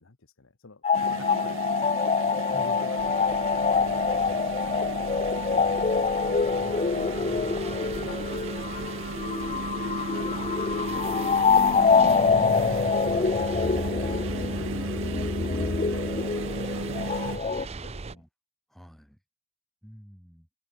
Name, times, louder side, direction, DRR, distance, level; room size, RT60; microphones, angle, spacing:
voice 1, 0.0-5.8 6.5-9.1 10.6-12.6 14.4-14.9 15.3-16.1 16.4-17.0 17.5-18.2, left 3 dB, 65° left, 1.2 m, -49 dB
sound 1, 0.8-17.6, left 5 dB, 30° left, 0.5 m, -25 dB
sound 2, 0.9-17.4, right 4 dB, 65° right, 0.8 m, -35 dB
voice 2, 2.5-2.8 4.2-4.4 6.6-6.7 10.7-10.9 13.1-13.4 17.3-18.3 18.7-19.2 19.8-20.5, equal, ahead, 4.9 m, -49 dB
sound 3, 3.0-18.2, right 3 dB, 30° right, 0.6 m, -41 dB
head